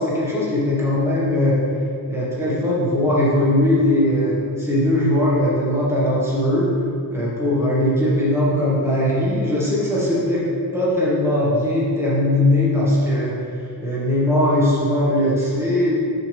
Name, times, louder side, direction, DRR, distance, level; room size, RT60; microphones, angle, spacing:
voice 1, 0.0-1.6 2.1-6.7 7.1-10.4 10.7-13.4 13.8-15.9, left 1 dB, 5° right, -8 dB, 1.5 m, -19 dB
6.5 x 4.8 x 3.4 m, 2.5 s
wide cardioid pair, 160°, 41 cm